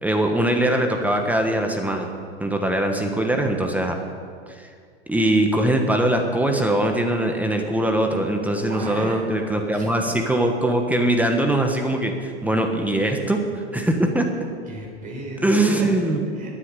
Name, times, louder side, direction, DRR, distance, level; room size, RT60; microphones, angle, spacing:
voice 1, 0.0-2.1 2.4-4.0 4.5-4.7 5.1-13.4 13.7-14.3 15.4-16.2, right 1 dB, 5° right, 3 dB, 1.3 m, -21 dB
voice 2, 8.6-9.2 9.7-9.9 14.7-16.5, right 1 dB, 25° right, -1 dB, 4.6 m, -35 dB
11.0 x 9.9 x 9.3 m, 2.2 s
hypercardioid pair, 115°, 32 cm